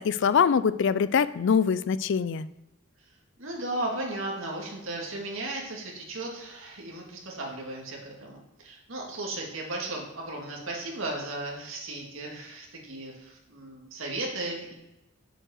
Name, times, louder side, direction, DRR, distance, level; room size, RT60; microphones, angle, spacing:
voice 1, 0.0-2.5, left 6 dB, 60° left, 16 dB, 0.4 m, -23 dB
voice 2, 3.4-14.7, right 2 dB, 70° right, -1 dB, 2.1 m, -35 dB
7.2 x 5.4 x 6.4 m, 0.94 s
head